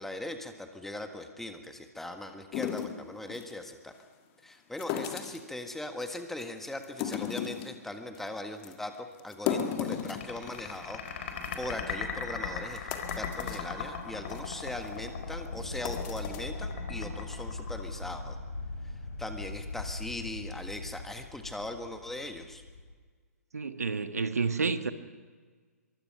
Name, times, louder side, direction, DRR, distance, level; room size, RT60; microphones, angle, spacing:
voice 1, 0.0-3.9 4.4-18.4 19.2-22.6, left 1 dB, 5° left, 6 dB, 1.6 m, -40 dB
sound 1, 2.5-3.5 4.8-5.5 6.0-6.4 6.8-7.8 8.2-8.3 8.6-8.7 9.2-10.8 11.1-11.2 11.4-11.6 12.2-12.3 12.7-13.7 14.2-14.4 14.9-15.0 15.6-16.4, left 9 dB, 30° left, 1.9 m, -35 dB
sound 2, 9.7-18.3, left 7 dB, 45° left, 4.2 m, -38 dB
sound 3, 13.0-22.9, left 2 dB, 80° left, 3.4 m, -41 dB
voice 2, 23.5-24.9, right 4 dB, 70° right, 10 dB, 1.4 m, -30 dB
24.0 x 23.5 x 5.7 m, 1.5 s
figure-of-eight pair, 120°, 9 cm